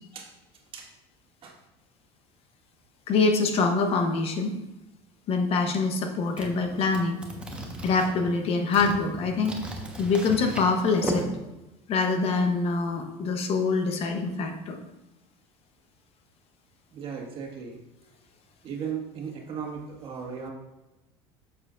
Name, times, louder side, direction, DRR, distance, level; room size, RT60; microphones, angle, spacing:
voice 1, 3.1-4.6 5.3-7.2 7.8-9.6 10.0-11.3 11.9-14.8, left 4 dB, 50° left, 5 dB, 0.9 m, -25 dB
sound 1, 6.3-11.2, right 1 dB, 10° right, 1.1 m, -36 dB
voice 2, 16.9-17.8 18.6-20.5, right 7 dB, 40° right, 0 dB, 1.7 m, -36 dB
7.4 x 6.8 x 2.5 m, 0.97 s
supercardioid pair, 105°, 13 cm